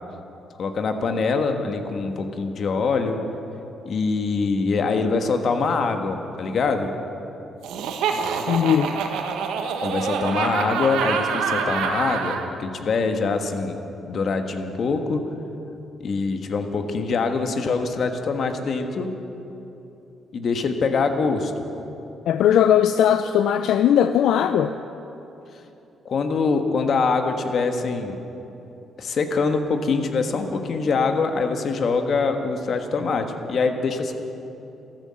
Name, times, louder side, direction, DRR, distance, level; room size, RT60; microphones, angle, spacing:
voice 1, 0.6-3.2 3.8-6.9 9.8-13.8 14.1-15.2 16.0-19.1 20.3-21.5 26.0-28.2 29.0-34.1, left 4 dB, 55° left, 6 dB, 1.4 m, -24 dB
Laughter, 7.6-12.5, right 6 dB, 90° right, 1.2 m, -26 dB
voice 2, 8.5-8.9 22.3-24.7, left 9 dB, 80° left, 10 dB, 0.5 m, -18 dB
13.5 x 13.5 x 7.6 m, 3.0 s
cardioid pair, 90°, 0 cm